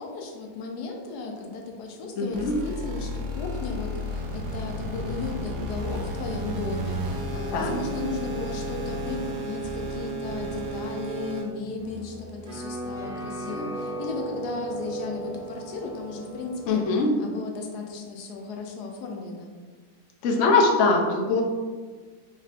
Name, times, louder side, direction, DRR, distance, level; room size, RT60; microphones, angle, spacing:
voice 1, 0.0-16.8 17.2-19.5, left 4 dB, 80° left, 1 dB, 1.2 m, -35 dB
voice 2, 2.2-2.5 7.5-7.8 16.7-17.1 20.2-21.4, left 3 dB, 60° left, 0 dB, 0.8 m, -22 dB
sound 1, 2.3-11.4, equal, 80° right, 1.2 m, -32 dB
sound 2, 11.8-17.0, right 1 dB, 55° right, 1.3 m, -36 dB
5.1 x 3.2 x 2.5 m, 1.5 s
omnidirectional pair, 1.7 m